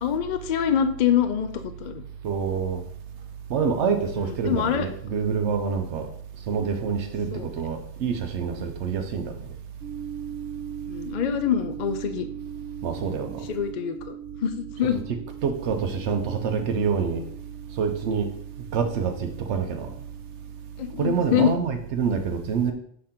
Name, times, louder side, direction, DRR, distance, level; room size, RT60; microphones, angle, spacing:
voice 1, 0.0-2.0 4.2-4.9 7.3-7.5 10.9-12.3 13.5-14.2 14.4-15.0 20.8-21.5, left 9 dB, 55° left, 9 dB, 0.5 m, -25 dB
voice 2, 2.2-2.8 3.5-6.1 6.5-9.3 12.8-13.5 15.4-17.2 17.8-18.3 18.7-19.9 21.0-22.7, right 6 dB, 90° right, 5 dB, 1.0 m, -26 dB
sound 1, 9.8-21.1, right 9 dB, 70° right, 1.0 m, -40 dB
6.6 x 3.7 x 4.3 m, 0.64 s
omnidirectional pair, 1.1 m